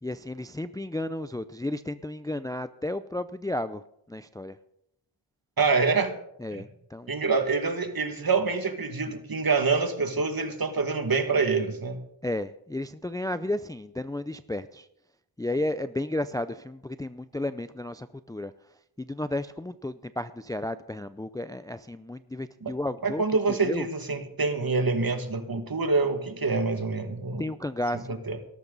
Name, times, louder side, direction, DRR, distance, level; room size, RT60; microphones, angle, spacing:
voice 1, 0.0-4.6 6.4-7.1 12.2-14.9 15.4-18.5 19.0-23.9 27.4-28.2, left 1 dB, 10° left, 13 dB, 0.5 m, -33 dB
voice 2, 5.6-6.1 6.5-6.6 7.1-12.0 22.6-22.7 23.0-27.4 28.3-28.4, right 4 dB, 50° right, 7 dB, 2.1 m, -26 dB
17.5 x 13.5 x 4.0 m, 0.78 s
cardioid pair, 60°, 46 cm